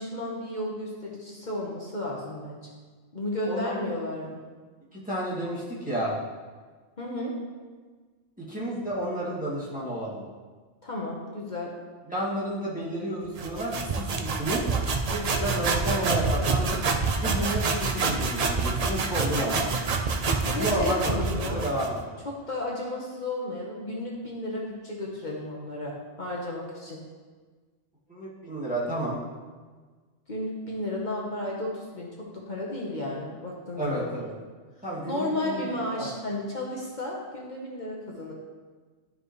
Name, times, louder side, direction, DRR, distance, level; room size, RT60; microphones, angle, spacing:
voice 1, 0.0-2.7 3.1-4.4 7.0-7.3 10.8-11.7 20.5-21.6 22.2-27.0 30.3-34.1 35.1-38.3, left 1 dB, 40° left, -3 dB, 1.2 m, -33 dB
voice 2, 4.9-6.2 8.4-10.2 12.1-14.6 15.1-16.8 17.2-19.7 20.6-22.2 28.1-29.2 33.8-34.3 34.8-36.1, right 1 dB, 5° right, -9 dB, 2.3 m, -31 dB
sound 1, 13.4-22.0, right 4 dB, 45° right, 0.5 m, -27 dB
12.0 x 4.9 x 3.2 m, 1.4 s
omnidirectional pair, 1.3 m